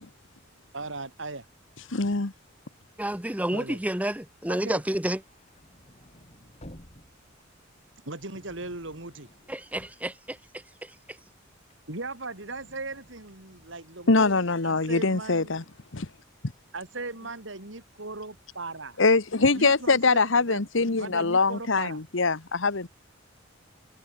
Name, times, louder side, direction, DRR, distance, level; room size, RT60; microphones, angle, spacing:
voice 1, 0.7-1.5 3.5-3.8 4.5-4.8 8.1-9.3 11.9-15.6 16.7-19.0 19.5-20.6 21.0-22.0, right 3 dB, 65° right, 3.7 m, -38 dB
voice 2, 1.9-2.3 14.1-15.6 15.9-16.1 19.0-22.9, left 3 dB, 70° left, 1.3 m, -23 dB
voice 3, 3.0-5.2 9.5-10.4 10.8-10.9, right 1 dB, 10° right, 1.2 m, -29 dB
sound 1, 5.0-10.9 11.3-14.6, equal, 35° left, 5.9 m, -55 dB
head